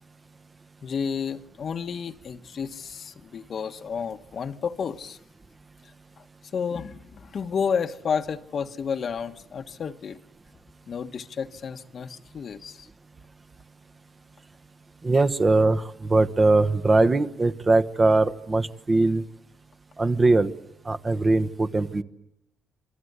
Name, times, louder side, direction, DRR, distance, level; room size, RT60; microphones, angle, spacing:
voice 1, 0.8-5.2 6.2-6.3 6.5-10.2 10.9-12.9, left 6 dB, 50° left, 1.2 m, -31 dB
voice 2, 15.0-19.2 20.0-20.5 20.8-22.0, right 2 dB, 25° right, 1.2 m, -21 dB
27.5 x 23.5 x 8.2 m
cardioid pair, 90°, 0 cm